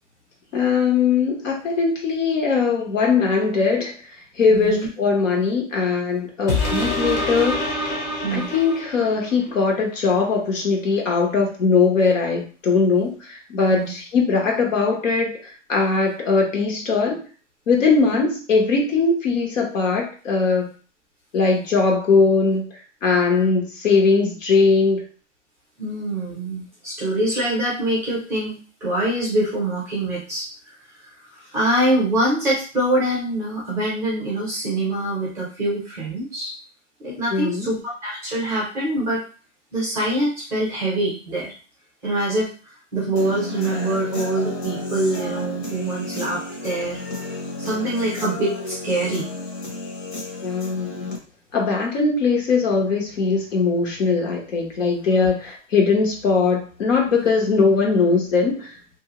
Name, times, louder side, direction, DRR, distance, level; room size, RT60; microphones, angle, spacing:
voice 1, 0.5-4.0 4.4-7.6 8.3-15.4 15.7-17.2 17.7-20.7 21.3-22.7 23.0-25.1 37.3-37.7 50.4-51.1 51.5-58.7, left 4 dB, 75° left, 0 dB, 1.2 m, -20 dB
voice 2, 4.5-4.9 8.2-8.5 13.7-13.9 25.8-30.5 31.5-36.5 37.0-39.2 39.7-41.5 42.0-42.5 42.9-47.0 47.6-49.3 55.2-55.3, right 1 dB, 5° right, -6 dB, 0.6 m, -24 dB
sound 1, 6.5-9.4 9.9-10.0, left 1 dB, 30° left, 0.7 m, -25 dB
Human voice / Guitar, 43.2-51.2, left 2 dB, 55° left, 1.1 m, -31 dB
2.6 x 2.2 x 2.9 m, 0.38 s
hypercardioid pair, 155°, 39 cm